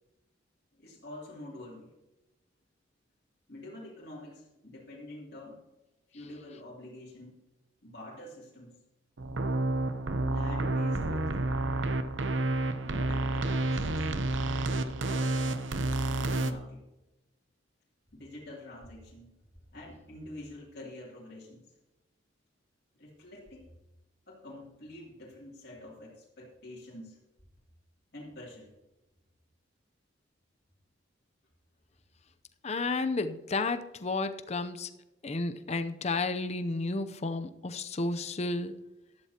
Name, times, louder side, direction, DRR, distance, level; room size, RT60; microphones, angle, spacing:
voice 1, 0.7-1.9 3.5-5.6 6.1-7.4 7.8-8.8 10.2-11.4 12.8-14.4 14.6-15.7 16.0-16.8 18.1-19.4 19.7-21.7 22.9-23.7 24.3-27.2 28.1-28.7, left 1 dB, 55° left, -6 dB, 2.9 m, -47 dB
sound 1, 9.2-16.5, right 2 dB, 80° right, 0.8 m, -30 dB
voice 2, 32.6-34.9 35.2-38.8, left 3 dB, 35° left, 10 dB, 0.6 m, -32 dB
13.0 x 12.0 x 2.9 m, 0.99 s
head